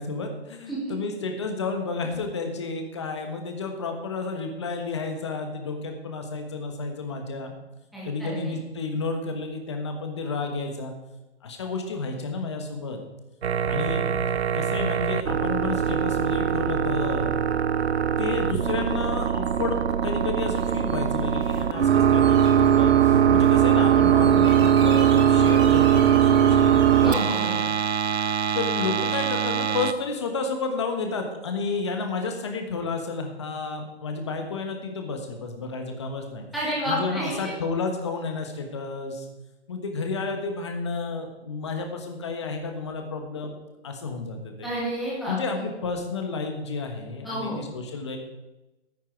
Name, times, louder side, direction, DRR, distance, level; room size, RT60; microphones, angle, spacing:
voice 1, 0.0-7.5 8.0-10.9 11.4-13.0 13.7-14.0 14.5-17.3 18.2-27.2 28.5-36.4 36.9-39.3 39.7-43.5 43.8-44.7 45.3-48.2, left 4 dB, 25° left, 4 dB, 1.3 m, -31 dB
voice 2, 7.9-8.5 27.0-27.6 36.5-37.5 44.6-45.6 47.2-47.6, equal, ahead, -9 dB, 1.8 m, -30 dB
sound 1, 13.4-29.9, right 9 dB, 80° right, 0.8 m, -21 dB
sound 2, 20.5-27.5, right 2 dB, 25° right, 2.5 m, -43 dB
13.0 x 9.3 x 4.6 m, 1.0 s
hypercardioid pair, 180°, 33 cm